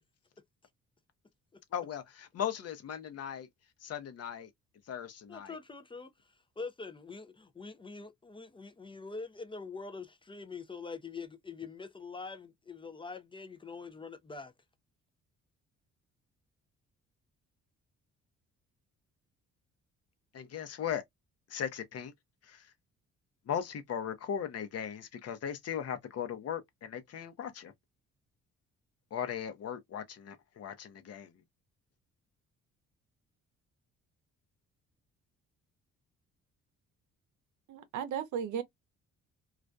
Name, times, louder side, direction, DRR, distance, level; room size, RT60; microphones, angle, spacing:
voice 1, 1.7-3.5 3.8-4.5 4.9-5.6 20.3-21.0 21.5-22.1 22.4-22.7 23.5-27.7 29.1-31.4, left 8 dB, 55° left, 0.7 m, -38 dB
voice 2, 5.3-6.1 6.6-14.5, left 4 dB, 15° left, 0.4 m, -44 dB
voice 3, 37.7-38.6, right 8 dB, 80° right, 0.7 m, -35 dB
2.4 x 2.1 x 2.5 m
cardioid pair, 90°, 30 cm